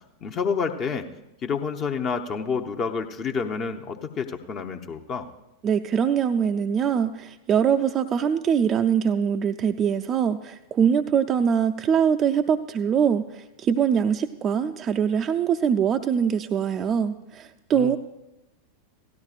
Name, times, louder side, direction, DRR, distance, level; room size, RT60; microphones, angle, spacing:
voice 1, 0.2-1.1 1.4-5.3 17.7-18.0, left 5 dB, 30° left, 5 dB, 0.7 m, -29 dB
voice 2, 5.6-18.0, right 7 dB, 25° right, 6 dB, 0.4 m, -23 dB
17.0 x 13.0 x 2.4 m, 0.95 s
figure-of-eight pair, 90°, 0 cm